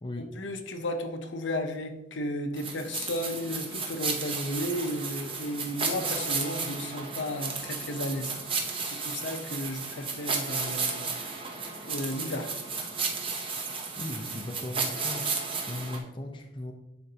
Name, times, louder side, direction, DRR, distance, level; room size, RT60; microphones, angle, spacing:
voice 1, 0.2-11.3 11.9-12.5, left 1 dB, 80° left, 5 dB, 0.8 m, -34 dB
sound 1, 2.6-16.0, right 4 dB, 30° right, 0.8 m, -33 dB
voice 2, 14.0-15.3 15.7-16.7, left 1 dB, 25° left, 3 dB, 0.6 m, -37 dB
10.5 x 4.4 x 2.8 m, 0.96 s
head